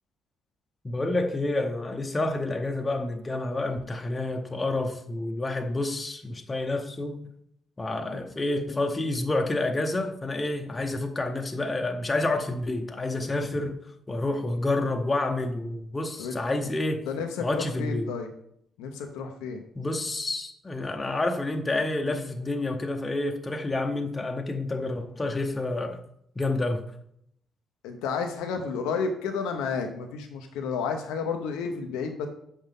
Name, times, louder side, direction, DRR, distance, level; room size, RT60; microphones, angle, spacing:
voice 1, 0.8-7.2 7.8-17.0 17.4-18.1 19.7-26.0 26.4-26.8, left 2 dB, 25° left, 0.9 m, -29 dB
voice 2, 17.1-18.3 18.8-19.6 27.8-32.3, left 5 dB, 85° left, 0.7 m, -31 dB
7.1 x 5.6 x 3.6 m
supercardioid pair, 55°, 0 cm